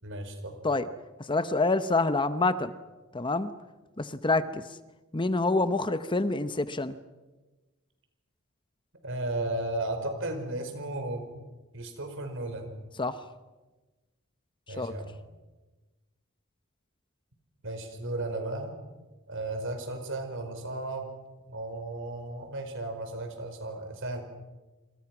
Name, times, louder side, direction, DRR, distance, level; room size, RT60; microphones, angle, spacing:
voice 1, 0.0-0.6 9.0-11.2 11.7-12.7 14.7-15.2 17.6-18.7 19.3-21.1 21.5-24.2, right 2 dB, 60° right, 6 dB, 5.0 m, -34 dB
voice 2, 1.3-2.7 3.1-3.5 4.0-4.6 5.1-7.0 13.0-13.2 14.8-14.9, left 3 dB, 25° left, 12 dB, 0.8 m, -27 dB
27.5 x 26.0 x 6.1 m, 1.2 s
head